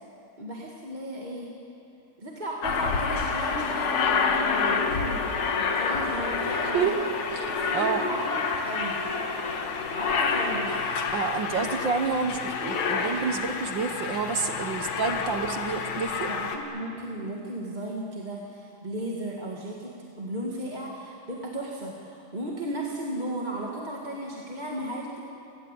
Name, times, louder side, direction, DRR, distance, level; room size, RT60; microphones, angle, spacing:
voice 1, 0.4-1.5 2.2-6.9 7.5-9.2 9.9-10.8 14.8-14.9 16.3-25.2, right 1 dB, 15° right, -2 dB, 2.0 m, -35 dB
Aircraft, 2.6-16.6, left 5 dB, 70° left, 3.1 m, -28 dB
voice 2, 7.3-8.0 11.1-16.3, right 5 dB, 60° right, 7 dB, 1.3 m, -29 dB
29.5 x 18.5 x 8.6 m, 2.7 s
omnidirectional pair, 3.3 m